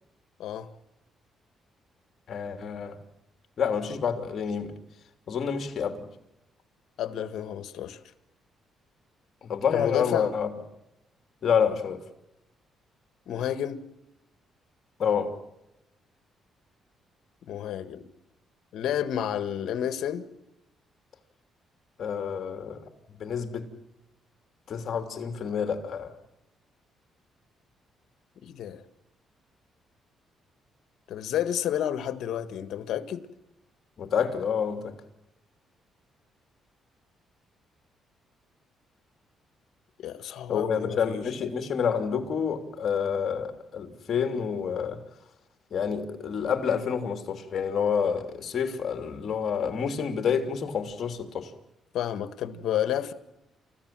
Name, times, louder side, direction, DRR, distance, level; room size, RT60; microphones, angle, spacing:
voice 1, 2.3-3.0 3.6-4.7 5.3-6.0 9.4-10.5 11.4-12.0 15.0-15.3 22.0-22.8 23.2-23.7 24.7-26.1 34.0-34.9 40.5-45.0 45.7-51.5, left 7 dB, 55° left, 3.2 m, -28 dB
voice 2, 7.0-8.0 9.7-10.3 13.3-13.8 17.5-18.0 18.7-20.2 28.4-28.8 31.1-33.3 40.0-41.2 51.9-53.1, left 10 dB, 75° left, 1.7 m, -30 dB
30.0 x 15.0 x 7.7 m
cardioid pair, 90°, 0 cm